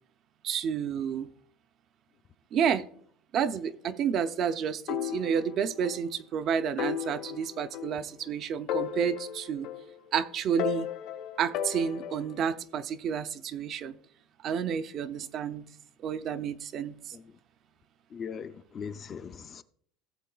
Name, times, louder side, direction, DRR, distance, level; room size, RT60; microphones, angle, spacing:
voice 1, 0.4-1.3 2.5-2.9 3.3-9.7 10.1-10.9 11.4-14.0 14.4-15.6 16.0-17.2, right 7 dB, 35° right, 0.4 m, -30 dB
sound 1, 4.9-6.0 6.3-6.4 6.8-8.3 8.7-10.1 10.6-12.4, left 10 dB, 55° left, 0.8 m, -35 dB
voice 2, 18.1-19.6, left 6 dB, 25° left, 0.4 m, -40 dB
17.0 x 7.4 x 2.3 m
cardioid pair, 165°, 0 cm